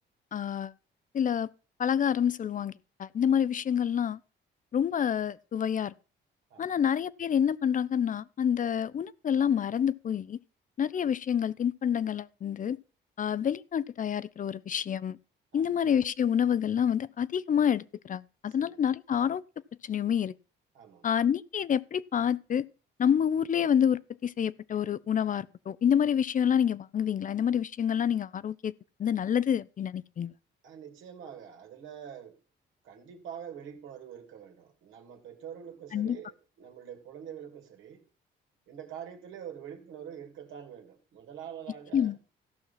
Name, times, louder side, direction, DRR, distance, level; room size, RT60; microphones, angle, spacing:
voice 1, 0.3-0.7 1.1-1.5 1.8-2.7 3.0-4.2 4.7-5.9 6.6-10.4 10.8-12.8 13.2-15.2 15.5-19.4 19.8-20.3 21.0-22.6 23.0-28.7 29.0-30.3 35.9-36.2 41.9-42.2, left 8 dB, 40° left, 0.5 m, -27 dB
voice 2, 20.7-21.1 30.6-32.4 32.8-38.0 38.7-42.1, right 8 dB, 85° right, 2.2 m, -45 dB
14.0 x 5.8 x 5.6 m
cardioid pair, 90°, 20 cm